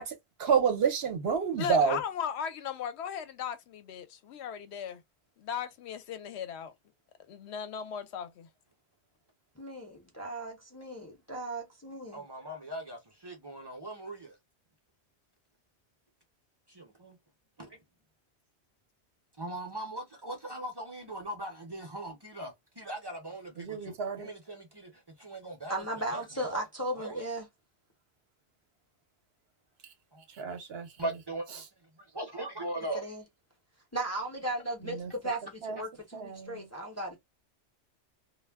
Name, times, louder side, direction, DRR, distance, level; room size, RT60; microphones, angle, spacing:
voice 1, 0.4-2.0 23.6-24.3 30.4-30.9 31.5-31.7 35.0-35.1 35.6-35.8 36.1-36.6, right 6 dB, 65° right, 0.9 m, -29 dB
voice 2, 1.6-5.0 5.4-6.7 7.3-8.5, left 8 dB, 75° left, 0.8 m, -37 dB
voice 3, 9.6-12.3 25.7-27.5 32.9-33.2 33.9-37.2, right 1 dB, 20° left, 0.5 m, -36 dB
voice 4, 12.1-13.0 13.2-14.3 16.8-17.2 17.6-17.7 19.4-22.5 22.8-24.9 25.2-25.7 26.1-26.6 27.0-27.2 31.0-31.4 32.1-33.0, right 1 dB, 30° right, 0.6 m, -39 dB
2.2 x 2.0 x 3.3 m
omnidirectional pair, 1.1 m